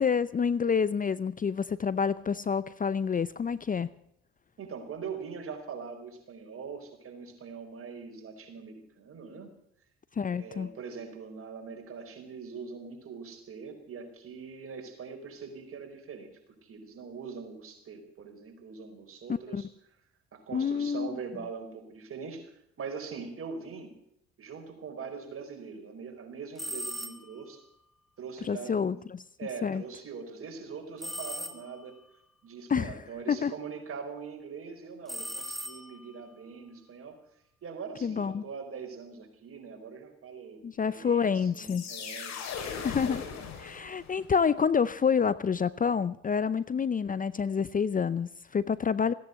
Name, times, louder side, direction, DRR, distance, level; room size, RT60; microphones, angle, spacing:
voice 1, 0.0-3.9 10.2-10.7 19.3-19.7 20.5-21.2 28.4-29.2 29.6-29.8 32.7-32.9 33.3-33.5 38.0-38.4 40.6-41.8 42.8-43.2 43.6-49.1, left 6 dB, 30° left, 17 dB, 0.6 m, -28 dB
voice 2, 4.6-9.6 10.3-16.3 16.6-19.7 20.3-24.0 24.4-27.6 28.2-29.0 29.4-32.0 32.4-37.2 37.6-42.8 43.1-43.2 43.6-43.9, right 5 dB, 50° right, 3 dB, 4.9 m, -42 dB
sound 1, 26.6-27.5 31.0-32.0 35.1-36.2, equal, ahead, 1.6 m, -39 dB
sound 2, 41.5-44.3, left 6 dB, 65° left, 3.7 m, -39 dB
16.5 x 10.5 x 8.2 m, 0.73 s
supercardioid pair, 70°, 29 cm